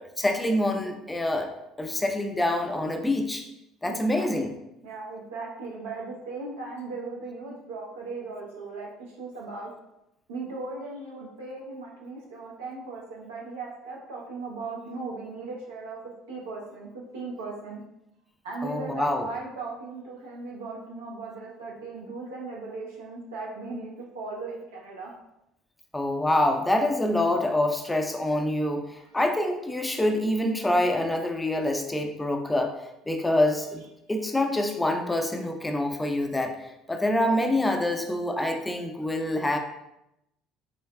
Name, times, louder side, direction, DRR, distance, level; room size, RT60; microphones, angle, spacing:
voice 1, 0.0-1.5 1.8-3.5 3.8-4.5 18.6-19.3 25.9-32.8 33.1-39.6, left 1 dB, 10° left, 4 dB, 0.5 m, -26 dB
voice 2, 3.8-4.4 4.8-9.7 10.3-16.0 16.3-17.8 18.4-25.1 29.0-29.2, right 3 dB, 70° right, -3 dB, 1.0 m, -38 dB
5.3 x 3.9 x 2.2 m, 0.86 s
figure-of-eight pair, 55°, 0 cm